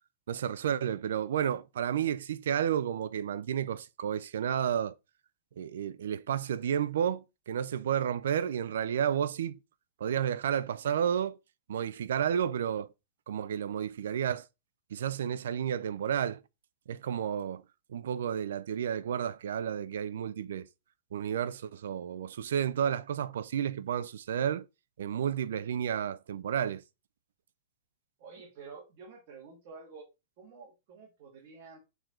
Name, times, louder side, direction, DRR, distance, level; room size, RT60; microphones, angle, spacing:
voice 1, 0.3-5.0 5.6-9.6 10.0-11.4 11.7-12.9 13.3-14.5 14.9-16.4 16.9-17.6 17.9-20.7 21.1-24.7 25.0-26.8, right 9 dB, 75° right, 0.6 m, -31 dB
voice 2, 28.2-30.1 30.4-31.8, right 5 dB, 40° right, 2.1 m, -49 dB
6.8 x 4.0 x 4.5 m
supercardioid pair, 170°, 0 cm